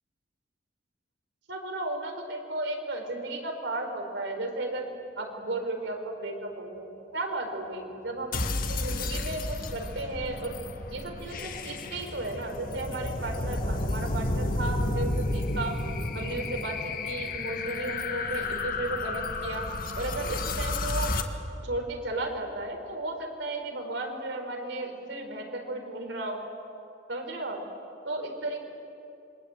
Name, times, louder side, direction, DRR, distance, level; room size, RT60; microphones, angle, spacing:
voice 1, 1.5-4.9 5.2-10.6 10.9-15.8 16.1-19.7 19.9-21.1 21.6-26.4 27.1-27.6 28.0-28.6, right 2 dB, 80° right, 3 dB, 4.6 m, -34 dB
sound 1, 8.3-21.2, left 2 dB, 50° left, 1.7 m, -32 dB
27.0 x 24.0 x 9.1 m, 2.8 s
head